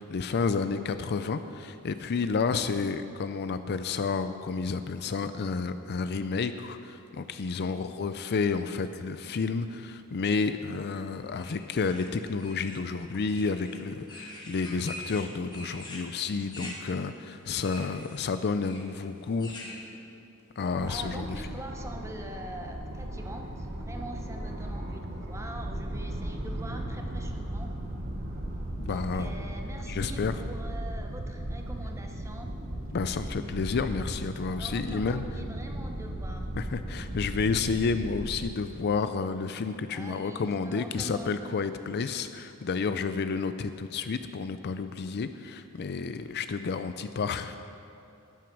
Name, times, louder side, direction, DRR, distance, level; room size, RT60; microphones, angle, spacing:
voice 1, 0.0-19.6 20.6-21.3 28.8-29.3 29.9-30.3 32.9-35.2 36.5-47.6, left 4 dB, 50° left, 10 dB, 0.4 m, -30 dB
voice 2, 7.6-8.0 15.7-16.0 19.7-20.0 20.8-27.7 28.9-32.5 34.4-36.5 39.9-41.6, right 1 dB, 15° right, 3 dB, 1.0 m, -44 dB
sound 1, 11.3-19.8, left 1 dB, 20° left, 1.6 m, -45 dB
sound 2, 20.7-38.5, right 1 dB, 45° right, 1.4 m, -36 dB
12.0 x 9.3 x 6.1 m, 2.7 s
head